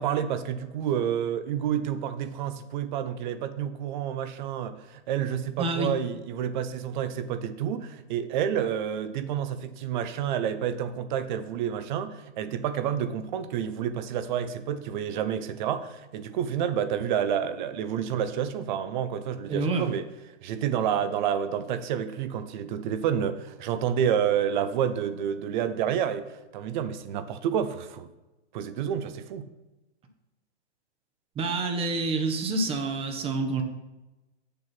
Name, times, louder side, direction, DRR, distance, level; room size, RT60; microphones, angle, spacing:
voice 1, 0.0-20.1 20.4-26.3 26.5-28.1 28.5-29.5, right 9 dB, 45° right, 0.8 m, -29 dB
voice 2, 5.6-5.9 19.5-19.9 31.4-33.6, right 3 dB, 15° right, 1.1 m, -27 dB
8.8 x 6.9 x 5.9 m
hypercardioid pair, 140°, 34 cm